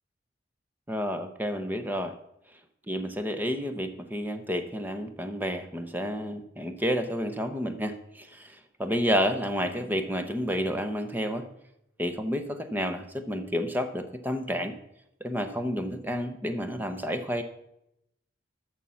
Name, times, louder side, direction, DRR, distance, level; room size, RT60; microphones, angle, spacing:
voice 1, 0.9-2.1 2.9-11.5 12.0-14.7 15.2-17.4, equal, 10° right, 8 dB, 0.8 m, -30 dB
13.0 x 6.4 x 5.6 m, 0.81 s
head